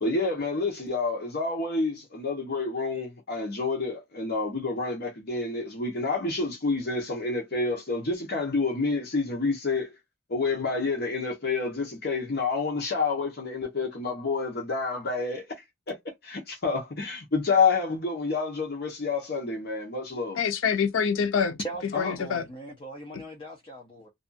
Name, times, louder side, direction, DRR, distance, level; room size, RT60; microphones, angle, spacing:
voice 1, 0.0-9.9 10.3-15.5 15.9-16.0 16.2-20.4 21.9-22.2, left 4 dB, 55° left, 0.9 m, -28 dB
voice 2, 20.4-22.5 23.1-23.2, left 6 dB, 90° left, 0.4 m, -26 dB
voice 3, 21.6-24.1, right 1 dB, 25° left, 0.6 m, -40 dB
2.5 x 2.3 x 2.5 m
head